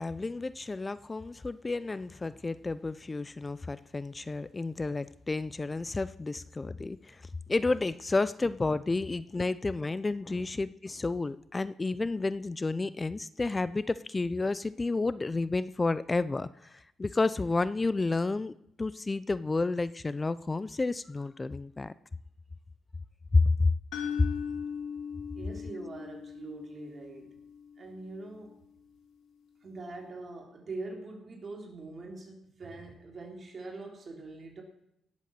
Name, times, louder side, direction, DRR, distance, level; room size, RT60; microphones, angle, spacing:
voice 1, 0.0-21.9 23.3-23.7, left 3 dB, 20° left, 16 dB, 0.5 m, -31 dB
sound 1, 23.9-28.0, left 7 dB, 80° left, 2.6 m, -39 dB
voice 2, 25.3-27.4 27.8-28.6 29.6-34.6, right 2 dB, 40° right, 1 dB, 3.7 m, -43 dB
17.5 x 8.2 x 6.7 m, 0.76 s
cardioid pair, 90°, 0 cm